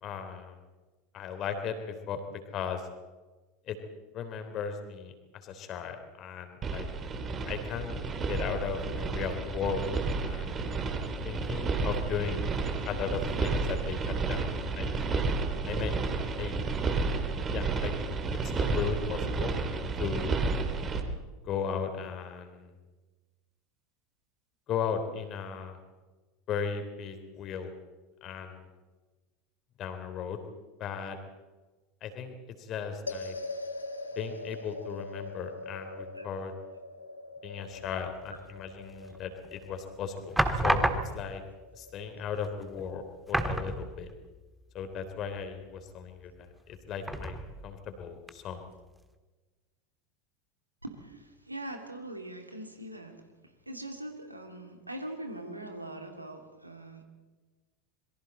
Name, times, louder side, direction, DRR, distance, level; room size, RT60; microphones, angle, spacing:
voice 1, 0.0-0.6 1.1-2.2 2.5-2.9 3.7-3.8 4.1-6.9 7.5-9.9 10.2-10.7 11.2-12.5 12.8-14.4 14.7-15.3 15.6-15.9 16.4-16.6 17.5-17.9 18.4-19.5 20.0-20.4 21.4-22.7 24.7-25.8 26.5-27.7 28.2-28.7 29.8-30.4 30.8-31.2 32.0-33.3 34.1-36.5 37.4-41.4 41.7-44.1 44.7-47.4 47.6-48.7, left 6 dB, 40° left, 7 dB, 3.3 m, -36 dB
sound 1, 6.6-21.0, right 4 dB, 25° right, 2.7 m, -31 dB
sound 2, 33.1-43.5, left 2 dB, 80° left, 1.7 m, -43 dB
voice 2, 35.8-36.3 37.9-38.1 50.8-53.2 53.7-57.0, right 1 dB, 85° right, 4 dB, 2.6 m, -42 dB
sound 3, 39.1-39.6 40.4-41.4 42.4-42.5 42.8-42.9 43.3-44.3 44.6-44.7 47.0-47.7 48.3-48.4, right 1 dB, 5° right, 1.7 m, -30 dB
27.0 x 22.5 x 4.3 m, 1.3 s
figure-of-eight pair, 80°, 0 cm